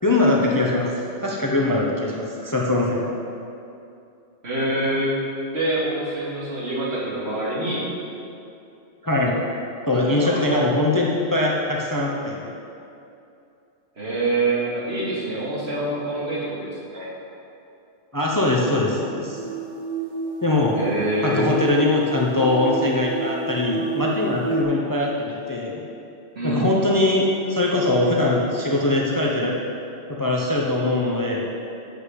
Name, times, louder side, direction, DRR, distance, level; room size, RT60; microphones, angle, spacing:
voice 1, 0.0-3.1 9.0-9.4 9.8-12.5 18.1-19.4 20.4-20.8 21.2-25.8 26.4-29.6 30.2-31.5, left 2 dB, 20° left, -3 dB, 0.9 m, -22 dB
voice 2, 4.4-5.2 5.5-7.9 10.0-10.4 14.0-17.1 20.7-21.5 26.3-26.8, right 2 dB, 60° right, -6 dB, 2.6 m, -25 dB
sound 1, 19.3-24.6, right 3 dB, 40° right, 2.0 m, -29 dB
7.9 x 6.6 x 7.6 m, 2.6 s
omnidirectional pair, 1.2 m